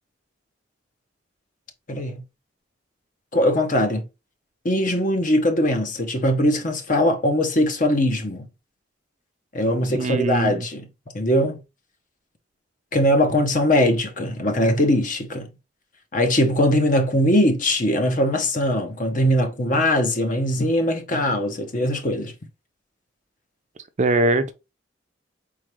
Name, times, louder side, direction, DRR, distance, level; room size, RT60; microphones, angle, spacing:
voice 1, 1.9-2.2 3.3-4.0 4.6-8.5 9.5-10.9 11.1-11.6 12.9-15.5 16.1-22.3, left 1 dB, 45° left, 0.9 m, -21 dB
voice 2, 9.9-10.6 24.0-24.5, right 2 dB, 40° right, 0.5 m, -21 dB
4.5 x 3.7 x 3.1 m
head